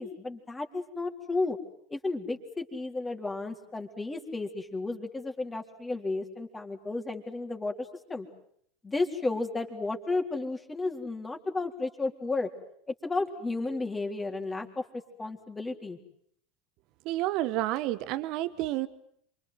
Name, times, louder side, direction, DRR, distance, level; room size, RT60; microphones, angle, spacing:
voice 1, 0.0-1.6 1.9-8.3 8.8-12.5 12.9-14.8 15.2-16.0, left 3 dB, 15° left, 3 dB, 3.9 m, -33 dB
voice 2, 17.0-18.9, right 15 dB, 50° right, 14 dB, 1.4 m, -30 dB
28.5 x 25.5 x 8.0 m, 0.68 s
figure-of-eight pair, 80°, 0 cm